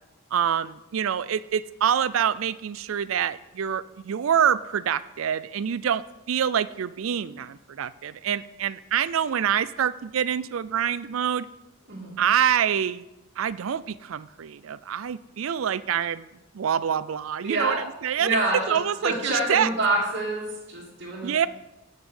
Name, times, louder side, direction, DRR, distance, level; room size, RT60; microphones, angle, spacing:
voice 1, 0.3-11.5 12.2-13.0 13.4-16.3 16.5-17.8 18.0-18.4 18.7-19.7 21.2-21.5, right 8 dB, 80° right, 17 dB, 0.4 m, -26 dB
voice 2, 17.4-17.8 18.2-18.8 19.0-21.3, right 2 dB, 60° right, -7 dB, 2.4 m, -27 dB
8.3 x 6.1 x 7.1 m, 0.95 s
head